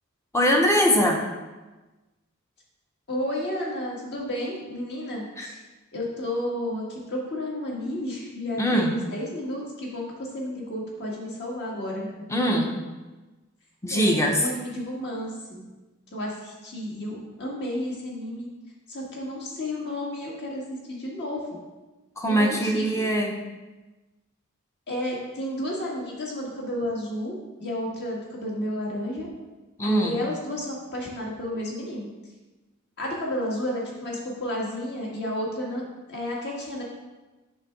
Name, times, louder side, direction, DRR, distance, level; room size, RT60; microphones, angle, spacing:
voice 1, 0.3-1.2 5.4-5.5 8.6-8.9 12.3-12.7 13.8-14.4 22.2-23.4 29.8-30.2, equal, 15° left, 1 dB, 0.7 m, -22 dB
voice 2, 3.1-5.6 5.9-10.1 10.3-12.1 13.9-15.6 16.1-18.5 18.9-20.6 20.9-21.4 22.3-23.0 24.9-29.3 29.8-32.1 33.0-36.8, left 1 dB, 55° left, -3 dB, 1.7 m, -32 dB
6.5 x 3.4 x 5.9 m, 1.1 s
head